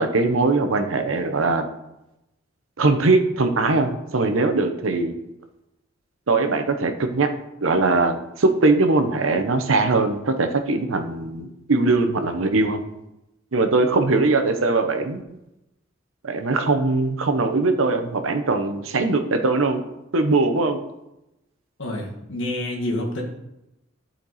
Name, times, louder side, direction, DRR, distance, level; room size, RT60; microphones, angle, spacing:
voice 1, 0.0-1.7 2.8-5.2 6.3-7.3 7.6-12.8 13.5-15.4 16.2-19.8 20.1-20.8, right 3 dB, 70° right, 7 dB, 0.8 m, -21 dB
voice 2, 21.8-23.2, left 1 dB, 65° left, 0 dB, 1.7 m, -28 dB
11.5 x 4.4 x 4.1 m, 0.90 s
head